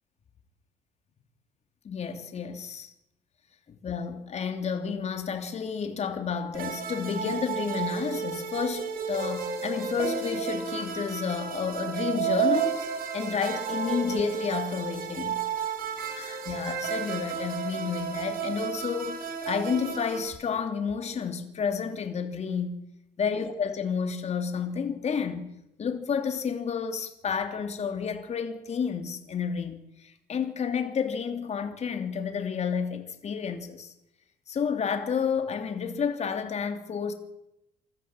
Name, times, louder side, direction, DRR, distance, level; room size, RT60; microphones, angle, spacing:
voice 1, 1.8-2.9 3.7-12.8 13.1-15.4 16.2-22.8 23.2-25.5 25.8-33.9 34.5-37.1, left 6 dB, 40° left, 3.1 m, -30 dB
sound 1, 6.5-20.3, right 7 dB, 60° right, 4.3 m, -32 dB
26.0 x 13.5 x 9.0 m
cardioid pair, 110°, 17 cm